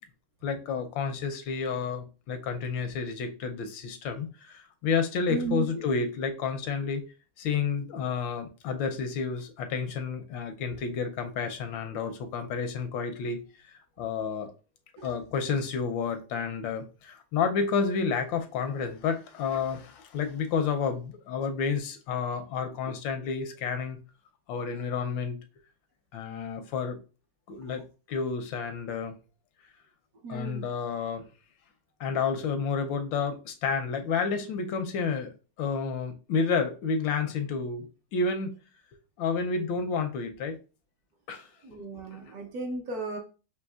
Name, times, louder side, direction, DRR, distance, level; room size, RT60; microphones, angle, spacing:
voice 1, 0.4-7.0 7.4-14.5 15.0-24.0 24.5-25.4 26.1-27.0 27.5-29.2 30.3-31.2 32.0-35.3 35.6-38.5 39.2-40.6 41.3-41.8 42.1-42.2, left 5 dB, 85° left, 7 dB, 1.4 m, -30 dB
voice 2, 5.3-5.8 15.0-15.1 22.9-23.0 30.2-30.7 41.6-43.2, right 4 dB, 65° right, 3 dB, 1.1 m, -35 dB
6.1 x 2.8 x 2.3 m, 0.33 s
omnidirectional pair, 2.1 m